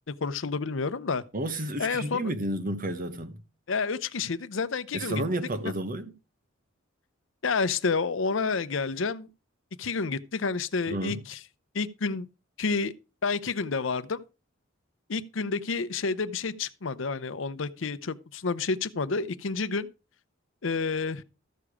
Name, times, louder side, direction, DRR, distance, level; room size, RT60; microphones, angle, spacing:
voice 1, 0.1-1.2 1.8-2.3 3.7-5.2 7.4-9.3 9.8-11.4 11.7-12.3 12.6-12.9 13.2-14.2 15.1-19.9 20.6-21.2, left 4 dB, 70° left, 0.7 m, -29 dB
voice 2, 1.3-3.4 4.9-6.1 10.9-11.2, right 1 dB, 45° right, 1.3 m, -31 dB
13.5 x 6.8 x 4.9 m
head